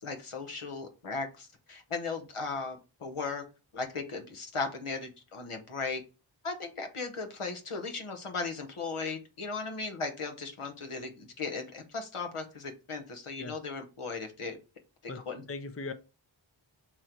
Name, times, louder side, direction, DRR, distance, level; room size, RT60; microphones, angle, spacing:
voice 1, 0.0-3.4 3.7-6.0 6.4-14.6 15.3-15.4, left 4 dB, 80° left, 1.0 m, -37 dB
voice 2, 15.1-15.9, left 3 dB, 30° left, 0.5 m, -39 dB
3.8 x 3.1 x 4.3 m
wide cardioid pair, 45°, 50 cm